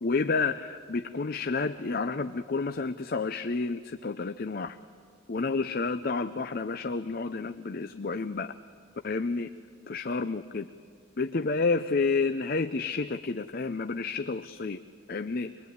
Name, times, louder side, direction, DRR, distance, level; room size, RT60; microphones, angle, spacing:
voice 1, 0.0-4.8 5.3-8.5 9.0-9.5 9.9-10.7 11.2-14.8 15.1-15.5, left 4 dB, 50° left, 10 dB, 0.6 m, -30 dB
24.0 x 22.0 x 9.4 m, 2.1 s
head